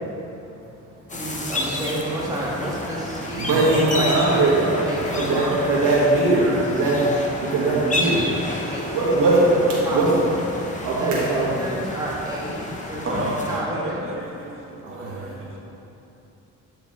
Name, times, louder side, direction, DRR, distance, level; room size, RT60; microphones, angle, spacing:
sound 1, 1.1-13.6, left 2 dB, 25° left, 0.9 m, -31 dB
voice 1, 1.1-4.2 4.8-5.9 6.4-6.9 8.7-9.2 9.8-10.0 11.0-11.3 11.6-14.0, right 1 dB, 10° right, -6 dB, 1.5 m, -31 dB
voice 2, 3.4-4.8 5.1-7.0 7.4-8.3 8.9-10.3 10.8-11.5 15.0-15.2, right 2 dB, 85° right, -6 dB, 1.4 m, -20 dB
voice 3, 13.0-15.6, right 1 dB, 45° right, -3 dB, 1.5 m, -31 dB
8.9 x 4.8 x 3.6 m, 2.9 s
cardioid pair, 90°, 30 cm